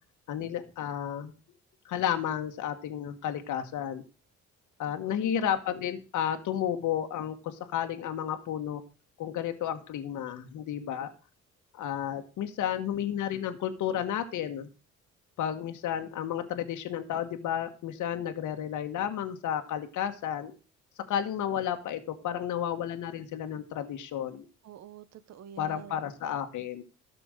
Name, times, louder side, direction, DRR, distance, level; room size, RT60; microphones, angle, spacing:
voice 1, 0.3-1.3 1.8-4.0 4.8-8.8 9.2-11.1 11.7-14.7 15.4-20.5 21.1-24.5 25.6-26.8, left 9 dB, 80° left, 1.4 m, -32 dB
voice 2, 4.9-5.3 24.6-26.1, right 8 dB, 60° right, 0.9 m, -47 dB
13.0 x 6.1 x 6.4 m
cardioid pair, 90°, 30 cm